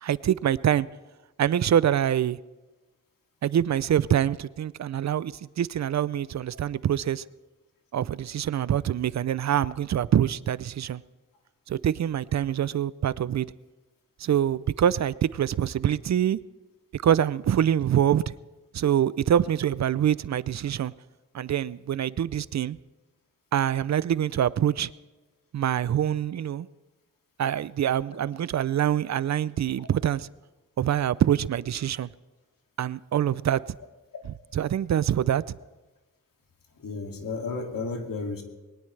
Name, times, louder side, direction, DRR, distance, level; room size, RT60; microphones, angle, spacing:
voice 1, 0.0-0.9 1.4-2.4 3.4-7.2 7.9-11.0 11.7-13.5 14.2-16.4 16.9-18.3 18.7-20.9 21.3-22.8 23.5-24.9 25.5-26.7 27.4-30.3 30.8-32.1 32.8-33.6 34.3-35.6, right 10 dB, 55° right, 0.4 m, -25 dB
voice 2, 36.8-38.4, left 4 dB, 80° left, 2.4 m, -33 dB
22.0 x 19.0 x 3.3 m
wide cardioid pair, 175°, 33 cm